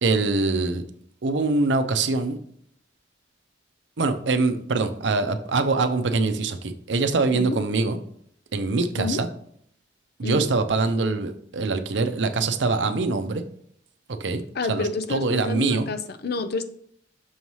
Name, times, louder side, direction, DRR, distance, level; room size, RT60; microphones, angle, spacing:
voice 1, 0.0-0.8 1.2-2.4 4.0-8.0 8.5-9.3 10.2-13.4 14.2-14.4 14.7-15.9, right 3 dB, 85° right, 8 dB, 0.6 m, -23 dB
voice 2, 14.5-16.7, left 3 dB, 60° left, 10 dB, 0.5 m, -29 dB
6.3 x 3.1 x 5.5 m, 0.66 s
head